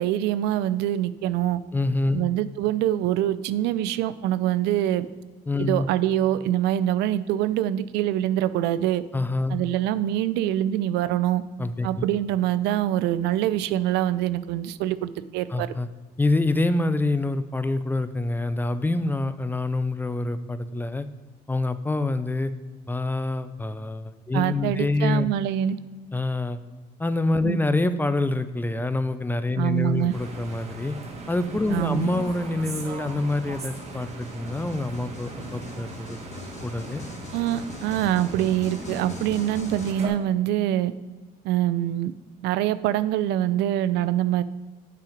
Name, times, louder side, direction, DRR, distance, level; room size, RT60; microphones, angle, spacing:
voice 1, 0.0-1.6 2.1-5.1 5.6-9.0 9.5-11.4 11.8-15.7 24.3-25.8 27.4-27.6 29.6-30.1 31.7-32.1 37.3-40.9 41.4-42.1 42.4-44.4, right 12 dB, 90° right, 14 dB, 0.4 m, -24 dB
voice 2, 1.7-2.2 5.5-5.9 9.1-9.6 11.6-11.9 15.5-15.9 16.2-21.1 21.5-22.5 22.9-25.3 26.1-26.6 27.0-30.9 31.3-36.2 36.6-37.0, left 2 dB, 10° left, 12 dB, 0.4 m, -26 dB
sound 1, 29.7-39.9, left 4 dB, 40° left, 1.2 m, -43 dB
sound 2, 30.1-40.1, right 4 dB, 40° right, 1.5 m, -39 dB
7.7 x 5.8 x 5.2 m, 1.3 s
cardioid pair, 110°, 17 cm